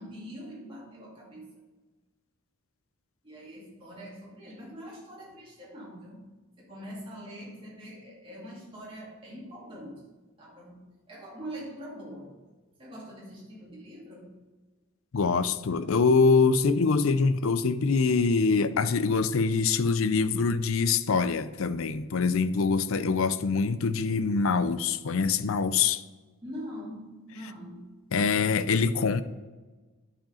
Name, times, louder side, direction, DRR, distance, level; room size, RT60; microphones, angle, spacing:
voice 1, 0.0-1.5 3.2-6.3 6.6-10.0 10.3-12.3 12.8-14.4 26.4-28.0, equal, 25° right, 2.3 m, -43 dB
voice 2, 15.1-26.0 28.1-29.2, left 4 dB, 65° left, 0.5 m, -24 dB
10.5 x 5.0 x 5.6 m
head